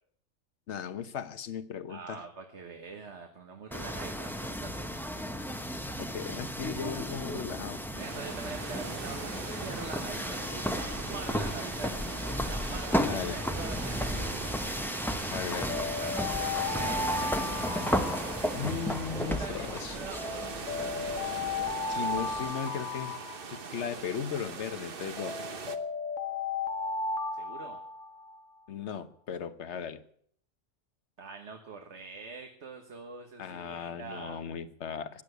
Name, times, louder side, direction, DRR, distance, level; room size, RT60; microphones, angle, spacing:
voice 1, 0.7-2.2 6.0-7.8 13.1-13.4 15.3-15.8 18.5-20.0 21.9-23.1 23.5-25.4 28.7-30.0 33.4-35.2, left 7 dB, 65° left, 12 dB, 1.3 m, -37 dB
voice 2, 1.9-5.1 7.9-9.2 9.6-14.3 15.5-17.7 19.2-20.8 27.3-27.8 31.2-34.4, right 4 dB, 65° right, 4 dB, 1.7 m, -44 dB
sound 1, 3.7-22.5, equal, ahead, 0.8 m, -34 dB
sound 2, 8.0-25.8, right 5 dB, 50° right, 1.2 m, -41 dB
Alarm, 15.7-19.0 20.2-24.0 25.2-28.4, left 4 dB, 85° left, 1.6 m, -35 dB
15.5 x 10.0 x 8.1 m, 0.63 s
omnidirectional pair, 1.3 m